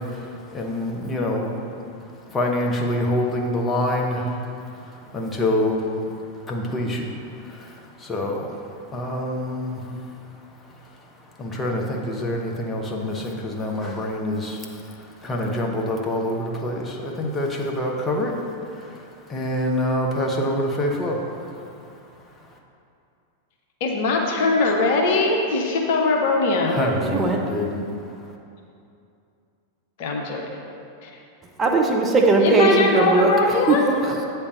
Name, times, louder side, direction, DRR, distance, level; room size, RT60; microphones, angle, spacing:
voice 1, 0.0-1.5 2.3-4.4 5.1-5.9 6.5-7.1 7.4-9.8 11.4-14.7 15.2-18.4 18.7-19.0 19.3-21.4 26.7-28.0, left 1 dB, 20° left, 0 dB, 0.9 m, -26 dB
voice 2, 23.8-26.8 30.0-30.4 32.4-33.8, left 3 dB, 50° left, 1 dB, 0.8 m, -21 dB
voice 3, 27.0-27.5 31.6-34.3, right 3 dB, 20° right, 0 dB, 0.7 m, -19 dB
8.3 x 3.3 x 6.2 m, 2.6 s
figure-of-eight pair, 90°, 0 cm